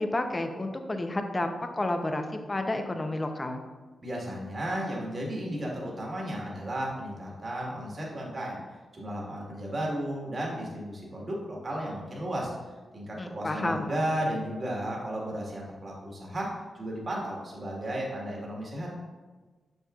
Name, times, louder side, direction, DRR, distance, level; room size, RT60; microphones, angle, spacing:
voice 1, 0.0-3.6 13.2-13.9, left 2 dB, 30° left, 6 dB, 0.7 m, -31 dB
voice 2, 4.0-8.6 8.9-12.5 12.9-16.5 16.7-18.9, right 1 dB, 45° right, -3 dB, 1.6 m, -34 dB
6.4 x 6.2 x 2.4 m, 1.3 s
cardioid pair, 60°, 0 cm